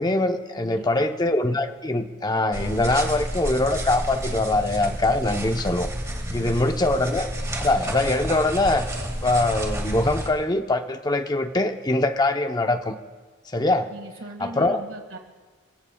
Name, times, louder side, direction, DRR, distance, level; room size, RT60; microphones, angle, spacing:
voice 1, 0.0-5.9 6.3-7.3 7.6-8.9 9.2-12.9 13.5-13.9 14.4-14.8, left 2 dB, 20° left, 6 dB, 0.8 m, -23 dB
voice 2, 0.5-1.1 6.2-6.5 13.9-15.2, right 1 dB, 75° right, 4 dB, 1.8 m, -39 dB
sound 1, 2.5-10.3, right 1 dB, 15° right, 2.0 m, -30 dB
29.0 x 16.0 x 2.3 m, 1.4 s
head